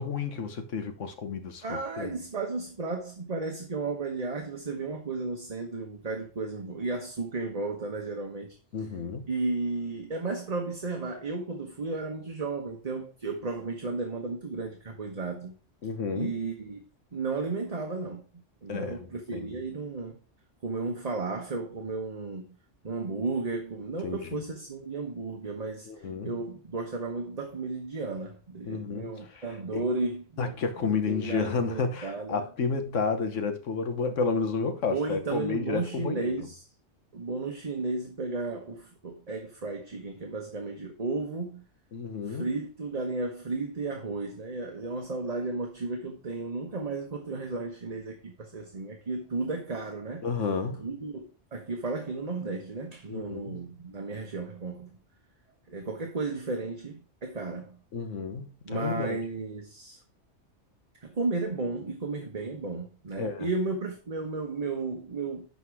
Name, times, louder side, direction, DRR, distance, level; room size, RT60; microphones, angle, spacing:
voice 1, 0.0-2.1 8.7-9.2 15.8-16.3 18.7-19.6 24.0-24.4 25.9-26.3 28.7-29.1 29.3-29.4 30.4-36.3 41.9-42.5 50.2-50.9 53.1-53.6 57.9-59.2 63.2-63.5, left 5 dB, 75° left, 1.4 m, -31 dB
voice 2, 1.6-8.5 9.3-15.5 16.1-16.8 17.1-18.2 18.6-20.2 20.6-22.5 22.8-25.9 26.2-30.6 30.8-32.4 34.9-36.7 37.1-41.6 42.3-50.2 50.8-54.9 55.7-57.8 58.6-60.0 61.0-65.5, right 3 dB, 35° right, 1.1 m, -34 dB
11.5 x 4.1 x 4.8 m
omnidirectional pair, 1.3 m